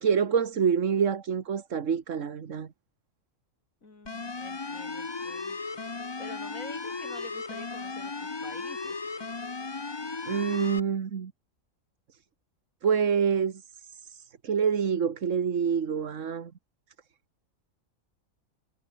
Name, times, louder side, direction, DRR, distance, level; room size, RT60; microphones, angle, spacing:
voice 1, 0.0-2.7 10.3-11.3 12.8-16.5, right 7 dB, 65° right, 1.7 m, -27 dB
voice 2, 3.8-5.6 6.2-9.0, left 3 dB, 75° left, 4.3 m, -47 dB
sound 1, 4.1-10.8, left 4 dB, 25° left, 0.8 m, -36 dB
omnidirectional pair, 1.4 m